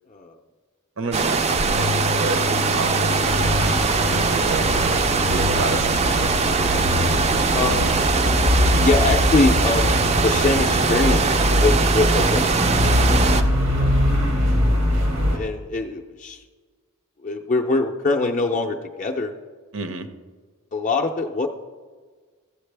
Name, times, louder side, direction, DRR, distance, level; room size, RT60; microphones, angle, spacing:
voice 1, 1.0-3.7 4.1-6.3 19.7-20.1, right 3 dB, 60° right, 9 dB, 0.7 m, -31 dB
sound 1, 1.1-13.4, right 4 dB, 30° right, 0.4 m, -21 dB
sound 2, 1.5-13.8 14.1-14.3, left 4 dB, 85° left, 0.5 m, -32 dB
sound 3, 3.2-15.4, left 1 dB, 85° right, 1.4 m, -23 dB
voice 2, 7.5-8.0 8.7-12.5 13.8-14.0 15.3-16.4 17.2-19.3 20.7-21.5, left 3 dB, 35° left, 1 dB, 0.4 m, -23 dB
15.0 x 7.3 x 3.3 m, 1.5 s
head